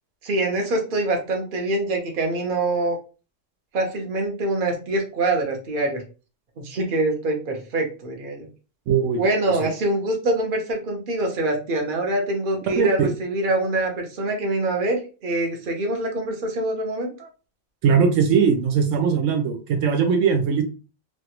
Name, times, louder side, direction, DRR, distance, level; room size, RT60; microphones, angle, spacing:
voice 1, 0.2-3.0 3.7-6.0 6.6-8.5 9.2-17.3, right 2 dB, 45° right, 2 dB, 1.0 m, -24 dB
voice 2, 8.9-9.7 12.8-13.1 17.8-20.6, right 6 dB, 85° right, 4 dB, 1.0 m, -20 dB
3.3 x 2.4 x 2.8 m, 0.34 s
omnidirectional pair, 1.3 m